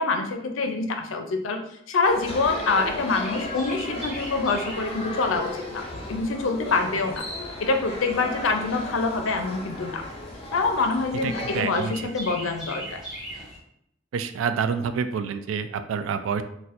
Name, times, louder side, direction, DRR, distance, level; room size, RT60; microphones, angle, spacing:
voice 1, 0.0-5.8 6.1-7.2 7.6-10.0 10.5-13.0, left 3 dB, 80° left, 5 dB, 0.5 m, -25 dB
sound 1, 2.0-11.6, left 1 dB, 30° left, 0.6 m, -35 dB
Chirp tweet, 2.7-13.6, right 1 dB, ahead, 1.1 m, -42 dB
voice 2, 11.2-11.9 14.1-16.4, right 6 dB, 85° right, 10 dB, 0.3 m, -27 dB
4.1 x 2.2 x 2.5 m, 0.75 s
head